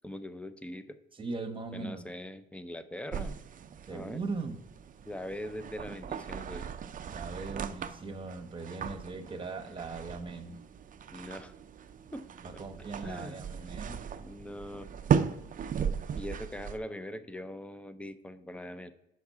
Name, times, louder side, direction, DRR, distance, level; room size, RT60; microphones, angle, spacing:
voice 1, 0.0-1.0 1.7-3.4 3.9-4.2 5.1-6.7 11.1-11.5 12.1-12.6 13.0-13.4 14.2-14.9 16.1-18.9, left 1 dB, 5° left, 12 dB, 0.5 m, -42 dB
voice 2, 1.2-2.0 3.9-4.6 7.1-10.6 12.4-14.0, right 3 dB, 25° right, 6 dB, 1.0 m, -39 dB
sound 1, 3.1-16.8, right 7 dB, 45° right, 0.5 m, -37 dB
5.9 x 4.8 x 5.5 m, 0.90 s
cardioid pair, 90°, 20 cm